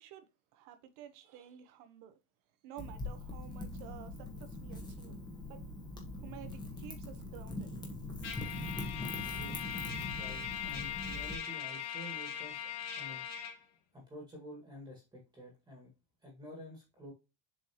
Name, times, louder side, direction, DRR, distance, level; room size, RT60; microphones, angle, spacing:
voice 1, 0.0-2.2 2.6-5.2 5.5-5.7 6.2-7.7, right 10 dB, 60° right, 1.2 m, -52 dB
Wind / Fire, 2.8-11.3, left 2 dB, 10° left, 1.3 m, -42 dB
Trumpet, 8.2-13.6, left 9 dB, 45° left, 1.4 m, -40 dB
voice 2, 9.3-9.8 10.1-12.6 13.0-13.2 13.9-15.9 16.2-17.1, equal, 10° right, 1.9 m, -49 dB
7.2 x 4.5 x 3.0 m
cardioid pair, 165°, 37 cm